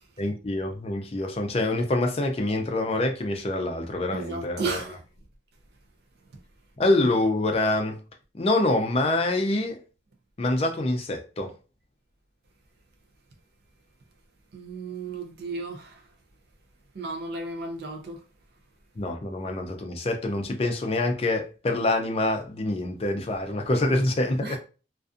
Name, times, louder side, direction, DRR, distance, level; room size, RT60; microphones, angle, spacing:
voice 1, 0.2-4.8 6.8-8.0 8.3-9.8 10.4-11.5 19.0-24.6, left 2 dB, 35° left, 0.4 m, -26 dB
voice 2, 4.1-5.0 14.5-16.0 16.9-18.2 23.9-24.0 24.4-24.6, right 3 dB, 60° right, 0.4 m, -34 dB
2.4 x 2.3 x 2.4 m
head